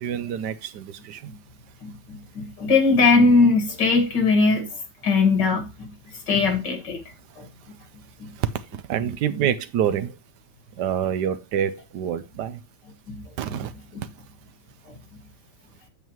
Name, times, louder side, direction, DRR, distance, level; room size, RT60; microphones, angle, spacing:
voice 1, 0.0-1.2 8.9-10.1 10.8-12.6 13.4-13.7, right 9 dB, 70° right, 1.2 m, -26 dB
voice 2, 1.8-4.7 5.0-5.9 6.3-7.0 7.4-7.5 8.2-8.3 13.1-13.2 13.5-13.6, left 4 dB, 75° left, 2.6 m, -20 dB
8.2 x 7.3 x 3.0 m
omnidirectional pair, 1.9 m